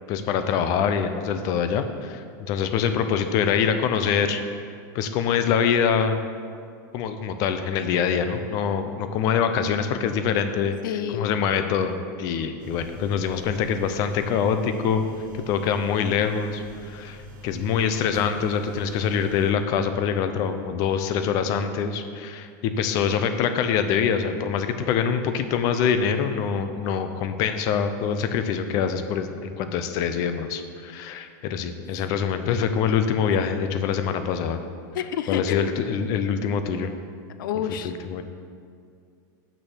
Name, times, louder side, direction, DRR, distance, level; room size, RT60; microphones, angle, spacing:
voice 1, 0.1-4.4 4.9-6.2 6.9-10.7 11.1-15.0 15.3-34.6 35.3-36.9 37.8-38.2, left 7 dB, 35° left, 8 dB, 0.5 m, -24 dB
voice 2, 10.8-11.3 34.9-35.7 37.4-37.9, left 8 dB, 80° left, 10 dB, 0.6 m, -29 dB
sound 1, 12.6-19.5, equal, 75° right, 1.1 m, -43 dB
6.4 x 6.2 x 6.2 m, 2.2 s
supercardioid pair, 175°, 11 cm